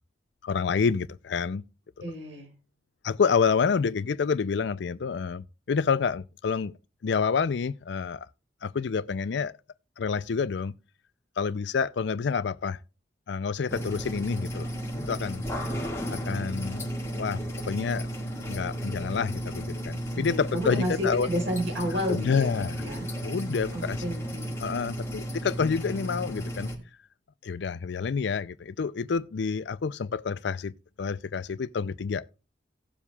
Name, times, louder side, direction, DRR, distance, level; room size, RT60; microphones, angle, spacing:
voice 1, 0.4-1.6 2.0-2.1 3.0-6.7 7.0-8.3 8.6-9.6 10.0-10.7 11.4-12.8 13.3-14.7 15.1-15.5 16.1-17.4 17.7-18.1 18.4-21.3 22.1-22.8 23.2-24.0 24.6-26.7 27.4-32.3, left 5 dB, 65° left, 0.4 m, -28 dB
voice 2, 2.0-2.5 20.1-23.1 23.7-24.5, equal, 80° right, 5.0 m, -31 dB
sound 1, 13.7-26.8, equal, 15° left, 1.9 m, -34 dB
18.0 x 7.3 x 2.3 m
head